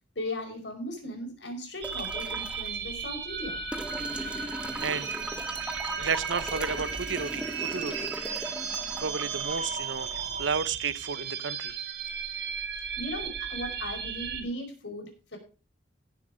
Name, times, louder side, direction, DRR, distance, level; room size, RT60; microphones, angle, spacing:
voice 1, 0.1-3.6 13.0-15.4, left 1 dB, 65° left, 5.2 m, -37 dB
sound 1, 1.8-2.7 3.7-10.7 12.1-12.2, right 1 dB, 5° right, 1.0 m, -39 dB
sound 2, 1.8-14.4, right 6 dB, 65° right, 2.9 m, -35 dB
sound 3, 3.8-10.5, right 2 dB, 40° right, 3.3 m, -45 dB
voice 2, 4.2-4.5 4.8-5.1 5.9-8.5 9.0-10.1 10.4-11.8, right 5 dB, 80° right, 0.8 m, -32 dB
16.0 x 7.4 x 5.1 m
head